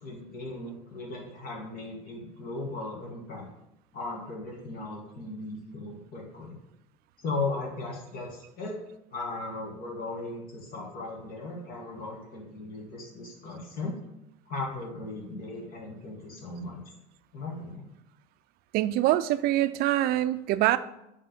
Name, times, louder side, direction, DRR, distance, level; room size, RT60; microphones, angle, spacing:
voice 1, 0.0-3.5 3.9-6.6 7.2-8.8 9.1-14.0 14.5-16.8 17.3-17.9, left 3 dB, 55° left, -2 dB, 2.0 m, -37 dB
voice 2, 18.7-20.8, right 14 dB, 55° right, 14 dB, 0.4 m, -24 dB
5.4 x 3.7 x 5.4 m, 0.86 s
hypercardioid pair, 85°, 18 cm